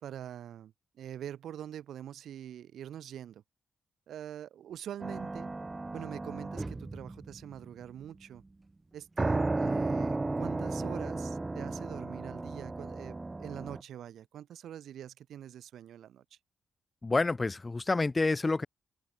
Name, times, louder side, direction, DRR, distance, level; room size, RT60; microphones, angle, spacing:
voice 1, 0.0-3.4 4.1-5.5 5.9-8.4 8.9-16.2, right 10 dB, 80° right, 2.0 m, -44 dB
sound 1, 5.0-7.7 9.2-13.8, right 2 dB, 25° right, 0.6 m, -34 dB
voice 2, 17.0-18.7, left 3 dB, 30° left, 0.5 m, -28 dB
cardioid pair, 70°, 0 cm